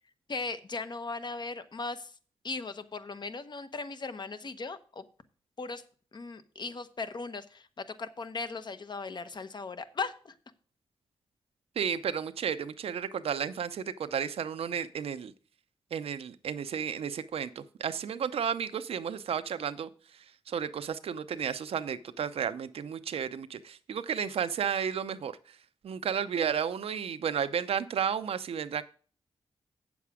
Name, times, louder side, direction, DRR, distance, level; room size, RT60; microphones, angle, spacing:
voice 1, 0.3-2.1 2.4-5.0 5.6-5.8 6.1-10.3, left 4 dB, 50° left, 11 dB, 1.0 m, -38 dB
voice 2, 11.8-15.3 15.9-19.9 20.5-25.4 25.8-28.8, right 7 dB, 80° right, 11 dB, 0.7 m, -32 dB
8.3 x 7.2 x 4.9 m, 0.40 s
cardioid pair, 80°, 10 cm